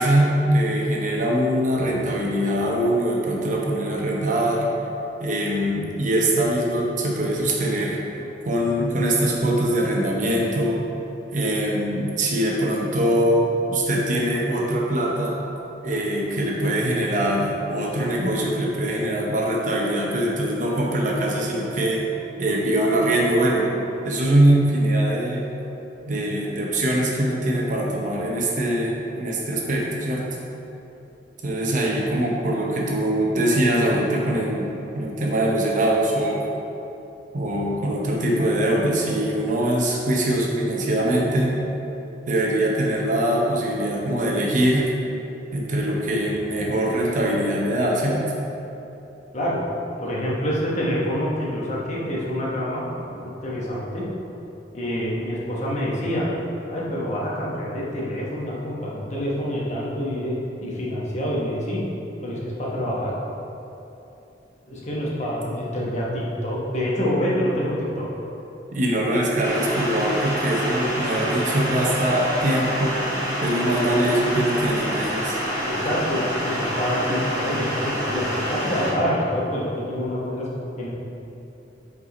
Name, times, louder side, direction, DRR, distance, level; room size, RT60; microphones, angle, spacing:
voice 1, 0.0-4.7 5.2-8.0 8.4-10.8 11.3-15.4 15.8-22.0 22.4-23.7 24.0-25.5 26.1-30.3 31.4-36.4 37.3-41.6 42.3-44.8 45.5-48.2 68.7-73.0 73.4-75.4, right 1 dB, 45° right, -2 dB, 0.8 m, -22 dB
voice 2, 50.0-54.1 54.7-56.3 56.7-60.3 60.6-61.8 62.2-63.1 64.7-68.0 75.7-80.5 80.8-80.9, equal, 40° left, -5 dB, 1.1 m, -26 dB
sound 1, 69.4-78.9, equal, 20° right, 1.3 m, -27 dB
4.8 x 4.7 x 4.1 m, 2.9 s
head